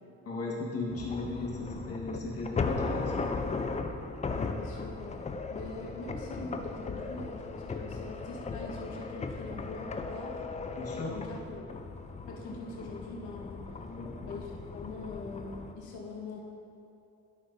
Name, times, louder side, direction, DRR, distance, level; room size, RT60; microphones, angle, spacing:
voice 1, 0.2-3.4 10.7-11.1 11.6-11.7 13.8-14.3, left 2 dB, 50° left, -3 dB, 1.5 m, -36 dB
sound 1, 0.9-15.7, left 4 dB, 25° left, 0.5 m, -37 dB
voice 2, 4.2-5.2 5.5-10.4 10.9-11.7 12.3-13.6 14.2-16.4, left 3 dB, 90° left, -2 dB, 1.3 m, -43 dB
11.5 x 5.9 x 2.7 m, 2.6 s
cardioid pair, 90°, 30 cm